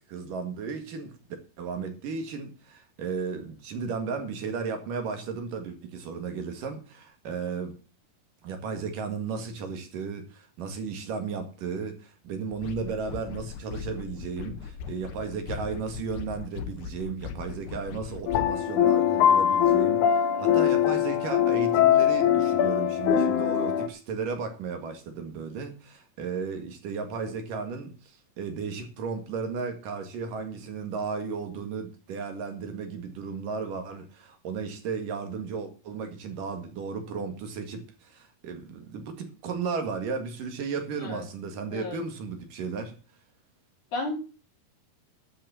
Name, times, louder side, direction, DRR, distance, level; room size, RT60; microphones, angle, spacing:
voice 1, 0.1-1.2 1.6-7.8 8.4-42.9, right 5 dB, 60° right, 3.3 m, -34 dB
sound 1, 12.5-18.6, left 7 dB, 85° left, 3.2 m, -39 dB
sound 2, 18.3-23.9, left 10 dB, 65° left, 2.1 m, -22 dB
voice 2, 41.7-42.0 43.9-44.1, left 2 dB, 50° left, 5.2 m, -32 dB
12.5 x 6.5 x 7.6 m
omnidirectional pair, 4.5 m